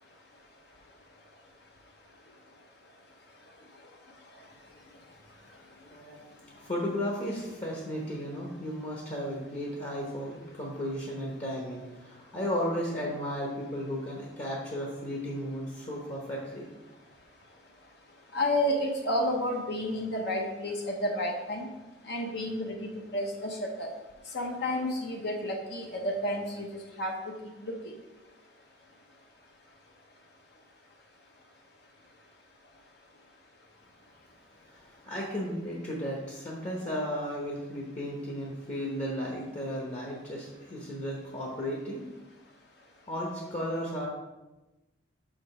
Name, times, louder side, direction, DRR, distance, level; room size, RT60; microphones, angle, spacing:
voice 1, 5.9-16.7 34.7-42.0 43.1-44.1, equal, 35° left, -3 dB, 1.1 m, -34 dB
voice 2, 18.3-21.7 22.1-23.9 24.3-26.7 27.0-27.1 27.6-27.8, left 1 dB, 55° left, 1 dB, 0.9 m, -30 dB
6.2 x 5.1 x 4.9 m, 1.1 s
head